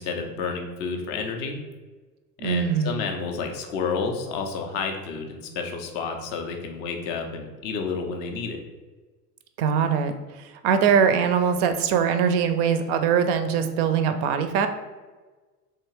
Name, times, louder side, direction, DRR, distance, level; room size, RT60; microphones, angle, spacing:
voice 1, 0.0-1.6 2.4-8.6, left 5 dB, 25° left, 3 dB, 0.3 m, -30 dB
voice 2, 2.4-3.0 9.6-14.7, right 7 dB, 40° right, 8 dB, 0.4 m, -22 dB
3.5 x 2.8 x 3.0 m, 1.3 s
hypercardioid pair, 85°, 50 cm